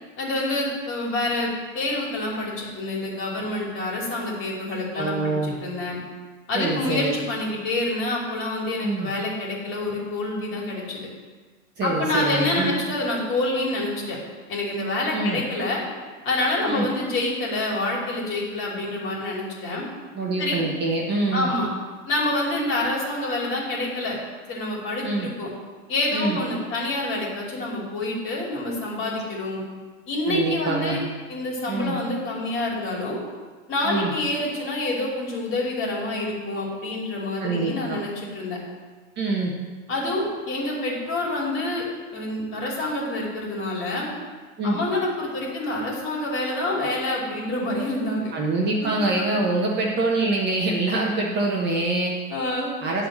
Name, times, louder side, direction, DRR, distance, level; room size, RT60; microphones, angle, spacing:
voice 1, 0.2-5.4 5.6-5.9 6.5-11.1 11.8-14.2 14.5-15.8 16.2-19.8 20.4-20.6 21.3-21.7 22.1-24.2 24.5-25.5 25.9-29.6 30.1-31.0 31.3-33.2 33.7-38.6 39.9-41.8 42.1-44.1 44.6-48.3 52.3-52.7, left 2 dB, 30° left, -3 dB, 2.7 m, -27 dB
voice 2, 4.9-5.5 6.5-7.1 8.8-9.1 11.8-12.7 15.1-15.4 16.7-16.9 20.1-21.5 25.0-25.3 26.1-26.4 30.3-31.0 31.7-31.9 33.8-34.1 37.4-38.0 39.2-39.5 44.6-44.8 48.3-52.1 52.8-53.1, right 2 dB, 25° right, -2 dB, 1.2 m, -25 dB
10.5 x 4.1 x 7.3 m, 1.4 s
hypercardioid pair, 135°, 40 cm